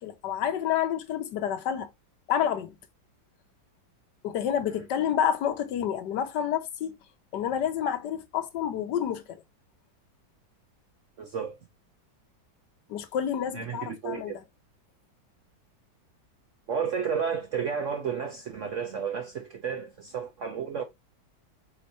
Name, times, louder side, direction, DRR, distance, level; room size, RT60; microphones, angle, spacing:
voice 1, 0.0-1.9 2.3-2.8 4.2-7.0 7.3-9.4 12.9-14.3, left 9 dB, 70° left, 1.3 m, -29 dB
voice 2, 11.2-11.6 13.5-14.4 16.7-20.8, right 6 dB, 65° right, 0.8 m, -32 dB
4.4 x 4.3 x 2.7 m
omnidirectional pair, 2.0 m